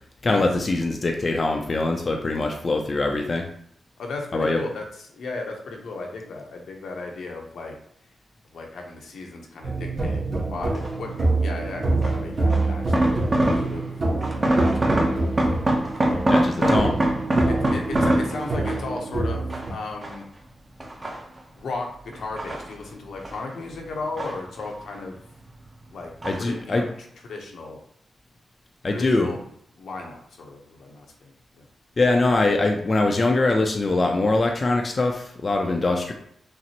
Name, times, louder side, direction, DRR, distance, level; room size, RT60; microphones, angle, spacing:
voice 1, 0.2-3.5 4.3-4.7 16.3-17.0 26.2-26.9 28.8-29.3 32.0-36.1, left 2 dB, 40° left, 2 dB, 0.5 m, -23 dB
voice 2, 4.0-4.8 5.1-7.7 8.4-10.2 10.5-11.1 11.4-13.9 14.2-14.5 14.8-15.6 16.6-16.8 17.5-20.2 21.5-21.9 22.1-25.2 25.9-26.8 27.2-27.8 28.9-29.4 29.8-31.6, left 3 dB, 80° left, 1 dB, 0.8 m, -35 dB
sound 1, 9.6-19.7, right 2 dB, 45° right, 1.5 m, -26 dB
sound 2, 10.7-11.1 12.0-13.9 14.2-19.0 19.5-20.4 20.8-21.6 22.1-23.5 23.7-24.9 25.2-25.8 26.2-26.6 26.9-27.0, right 1 dB, 30° right, 0.8 m, -24 dB
5.8 x 2.0 x 2.9 m, 0.69 s
cardioid pair, 75°, 0 cm